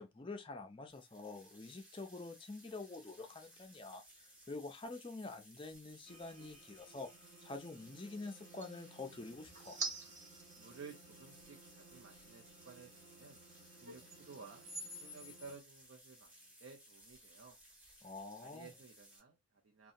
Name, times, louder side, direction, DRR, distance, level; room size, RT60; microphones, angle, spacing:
voice 1, 0.0-7.1 7.4-9.8 18.0-18.7, left 3 dB, 25° left, 0.4 m, -47 dB
sound 1, 0.9-19.2, equal, 5° right, 0.9 m, -61 dB
sound 2, 6.1-15.6, right 3 dB, 35° right, 0.7 m, -50 dB
voice 2, 10.6-13.4 13.8-14.7 15.0-17.6 18.4-19.9, right 5 dB, 75° right, 0.6 m, -55 dB
2.7 x 2.2 x 2.5 m
head